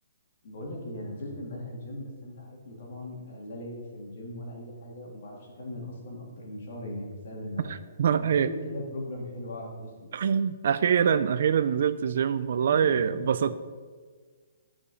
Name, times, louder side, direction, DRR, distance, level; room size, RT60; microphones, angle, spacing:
voice 1, 0.4-7.7 8.1-10.1 12.7-13.2, left 1 dB, 50° left, -1 dB, 2.2 m, -39 dB
voice 2, 7.7-8.5 10.1-13.6, right 7 dB, 50° right, 13 dB, 0.3 m, -24 dB
11.0 x 5.1 x 4.9 m, 1.5 s
hypercardioid pair, 170°, 0 cm